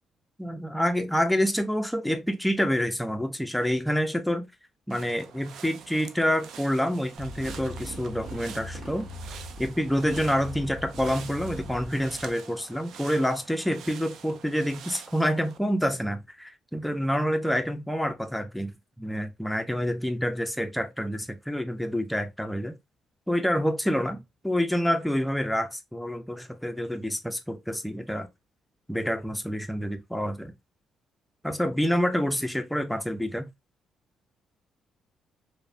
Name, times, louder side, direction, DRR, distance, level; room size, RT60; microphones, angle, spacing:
voice 1, 0.4-4.5 4.9-9.1 9.6-22.8 23.3-28.3 28.9-30.5 31.4-33.5, equal, 5° left, 0.5 m, -27 dB
sound 1, 4.9-15.6, right 7 dB, 75° right, 0.3 m, -46 dB
Motorcycle, 7.2-12.3, left 1 dB, 50° right, 1.3 m, -40 dB
3.1 x 2.0 x 2.5 m
cardioid pair, 90°, 0 cm